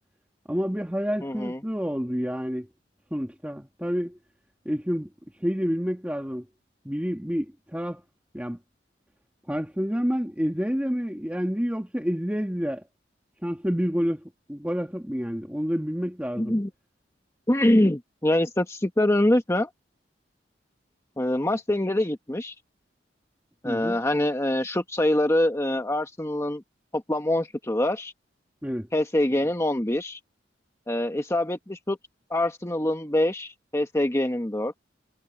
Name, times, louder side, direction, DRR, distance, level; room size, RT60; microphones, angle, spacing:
voice 1, 0.5-2.7 3.1-4.2 4.7-5.1 5.4-6.5 6.9-8.0 8.3-8.6 9.5-12.8 13.4-14.2 14.5-16.6 23.6-24.0 28.6-28.9, equal, 10° right, 1.8 m, -28 dB
voice 2, 1.2-1.6 16.4-16.7 17.5-19.7 21.2-22.5 23.6-26.6 26.9-28.1 28.9-30.2 30.9-32.0 32.3-34.7, left 1 dB, 15° left, 1.2 m, -24 dB
head